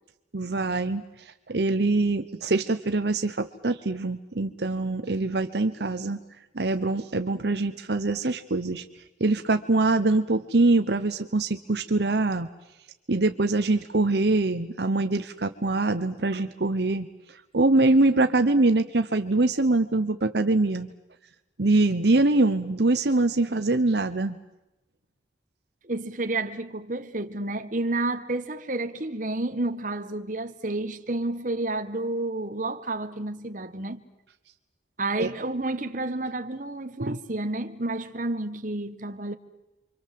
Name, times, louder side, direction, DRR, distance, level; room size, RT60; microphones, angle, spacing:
voice 1, 0.3-6.2 6.5-8.8 9.2-12.5 13.1-20.9 21.6-24.4 35.2-35.3 37.0-37.2, right 2 dB, 65° right, 1.0 m, -24 dB
voice 2, 23.5-23.8 25.8-34.0 35.0-39.3, right 2 dB, 45° right, 1.4 m, -30 dB
29.0 x 25.0 x 7.6 m
head